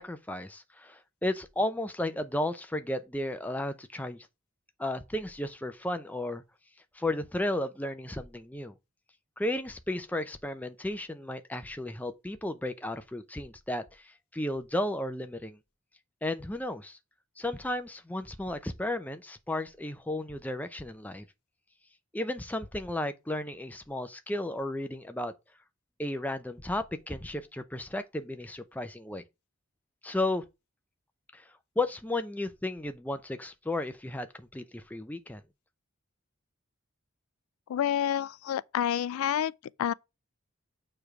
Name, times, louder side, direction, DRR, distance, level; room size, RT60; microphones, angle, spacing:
voice 1, 0.0-4.3 4.8-6.4 6.9-8.7 9.4-15.6 16.2-17.0 17.4-21.3 22.1-25.3 26.0-29.2 30.0-30.4 31.3-31.5 31.8-35.4, left 1 dB, 5° left, 0.5 m, -34 dB
voice 2, 37.7-39.5 39.8-39.9, left 9 dB, 80° left, 0.3 m, -28 dB
6.9 x 3.3 x 6.0 m
head